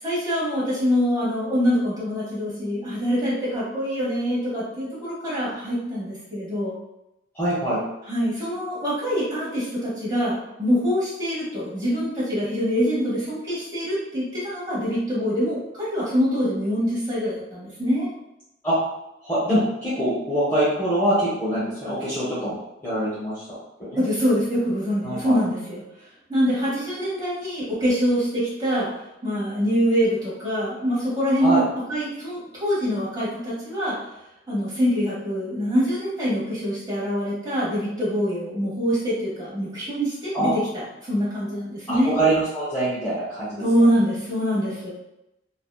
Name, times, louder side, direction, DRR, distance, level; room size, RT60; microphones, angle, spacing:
voice 1, 0.0-6.7 8.1-18.1 24.0-25.8 26.3-28.9 29.2-31.6 31.9-34.0 34.5-42.2 43.6-44.9, equal, 20° right, -8 dB, 1.1 m, -24 dB
voice 2, 7.3-7.8 18.6-18.8 19.2-23.4 23.8-24.0 25.0-25.4 31.4-31.6 40.3-40.5 41.9-43.6, right 1 dB, 10° left, -12 dB, 0.8 m, -24 dB
2.7 x 2.3 x 2.3 m, 0.87 s
head